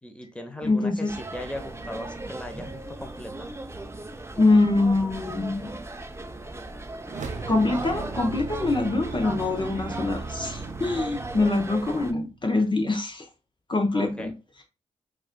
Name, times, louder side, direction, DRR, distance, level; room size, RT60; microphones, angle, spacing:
voice 1, 0.0-3.5 13.9-14.3, left 1 dB, 10° left, 0.9 m, -38 dB
voice 2, 0.6-1.1 4.4-5.8 7.5-13.2 13.7-14.3, left 2 dB, 35° left, 0.8 m, -24 dB
sound 1, 1.1-12.1, right 2 dB, 20° right, 0.6 m, -37 dB
sound 2, 7.1-12.5, right 5 dB, 60° right, 0.8 m, -38 dB
4.7 x 2.5 x 2.2 m
supercardioid pair, 45°, 14 cm